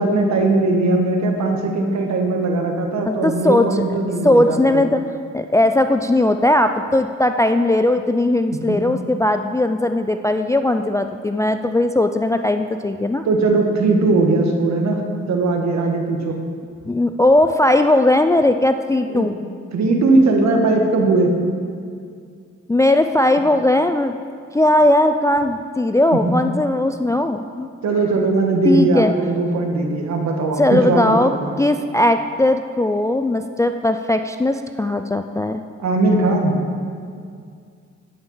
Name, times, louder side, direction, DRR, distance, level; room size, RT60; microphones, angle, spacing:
voice 1, 0.0-4.8 8.7-8.8 13.2-15.0 15.3-16.4 19.1-19.3 19.7-21.3 27.8-31.6 35.8-36.6, right 2 dB, 70° right, 3 dB, 1.4 m, -19 dB
voice 2, 3.1-3.8 4.2-5.0 5.3-13.3 16.9-19.4 22.7-24.2 24.5-27.7 28.6-29.1 30.6-31.3 31.6-35.6, left 1 dB, 10° left, 7 dB, 0.3 m, -18 dB
9.7 x 5.6 x 5.6 m, 2.2 s
supercardioid pair, 60°, 29 cm